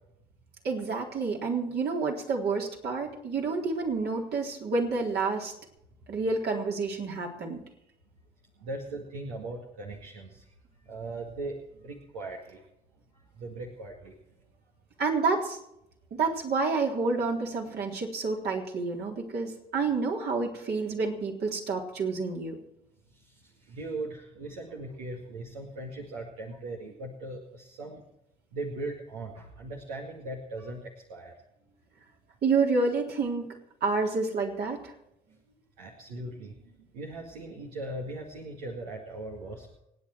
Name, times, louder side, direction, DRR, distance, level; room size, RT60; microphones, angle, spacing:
voice 1, 0.6-5.5 6.1-7.6 15.0-15.6 16.2-22.6 32.4-33.5 33.8-34.8, right 4 dB, 60° right, 0 dB, 3.8 m, -29 dB
voice 2, 8.6-10.4 10.9-12.6 13.4-14.1 23.7-28.0 28.5-31.4 35.8-36.5 36.9-39.8, right 2 dB, 85° right, -1 dB, 2.1 m, -39 dB
26.0 x 9.9 x 4.6 m, 0.83 s
hypercardioid pair, 50°, 19 cm